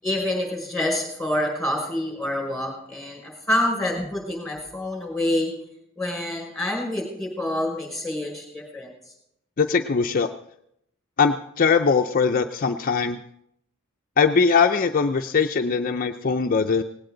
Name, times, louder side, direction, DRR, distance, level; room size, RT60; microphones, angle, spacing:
voice 1, 0.0-5.5 6.0-8.9, left 1 dB, ahead, 0 dB, 5.6 m, -27 dB
voice 2, 9.6-10.3 11.2-13.2 14.2-16.8, left 5 dB, 45° left, 5 dB, 0.5 m, -21 dB
18.5 x 17.0 x 3.9 m, 0.76 s
head